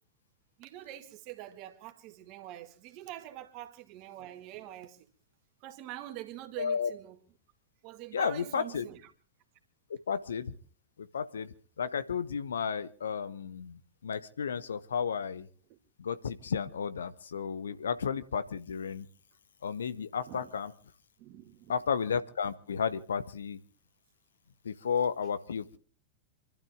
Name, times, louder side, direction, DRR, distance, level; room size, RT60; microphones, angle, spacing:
voice 1, 0.6-5.0 5.6-7.2 7.8-9.1 15.7-15.8 20.3-20.5 21.2-21.8, right 13 dB, 45° right, 2.0 m, -45 dB
voice 2, 6.6-6.9 8.1-8.8 9.9-10.5 11.0-15.5 16.0-19.1 19.6-20.7 21.7-23.6 24.6-25.8, left 6 dB, 70° left, 0.8 m, -33 dB
27.5 x 12.0 x 3.6 m
figure-of-eight pair, 90°, 0 cm